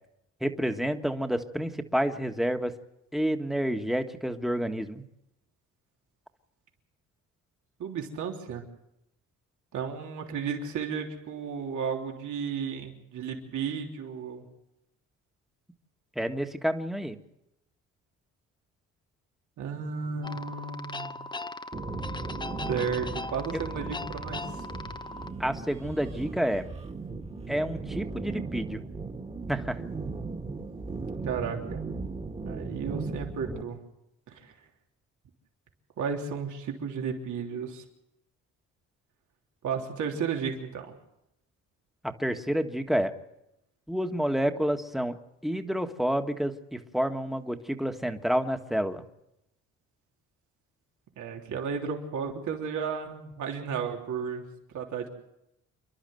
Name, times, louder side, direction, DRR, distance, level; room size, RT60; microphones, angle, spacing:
voice 1, 0.4-2.7 3.1-5.0 16.1-17.2 23.5-23.6 25.4-26.7 27.5-28.8 29.5-29.8 42.0-43.1 43.9-45.1 45.4-49.0, equal, ahead, 6 dB, 1.6 m, -29 dB
voice 2, 7.8-8.7 9.7-14.4 19.6-21.2 22.7-24.7 31.2-31.8 32.4-33.8 34.3-34.5 36.0-37.8 39.6-40.9 51.2-54.4 54.7-55.1, right 6 dB, 75° right, 1 dB, 3.4 m, -33 dB
sound 1, 20.2-25.3, left 2 dB, 15° left, 0.9 m, -39 dB
sound 2, 21.7-33.6, right 3 dB, 20° right, 2.0 m, -37 dB
28.5 x 11.5 x 7.9 m, 0.86 s
cardioid pair, 90°, 30 cm